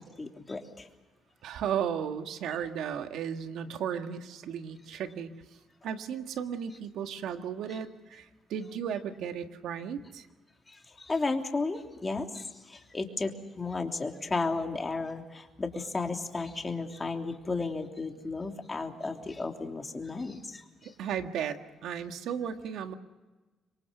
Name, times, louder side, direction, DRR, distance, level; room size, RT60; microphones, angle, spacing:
voice 1, 0.2-0.8 11.0-20.6, left 3 dB, 25° left, 3 dB, 3.2 m, -33 dB
voice 2, 1.4-5.3 5.8-10.3 20.8-22.9, right 8 dB, 80° right, 7 dB, 1.7 m, -35 dB
26.5 x 23.0 x 6.8 m, 1.2 s
cardioid pair, 90°, 0 cm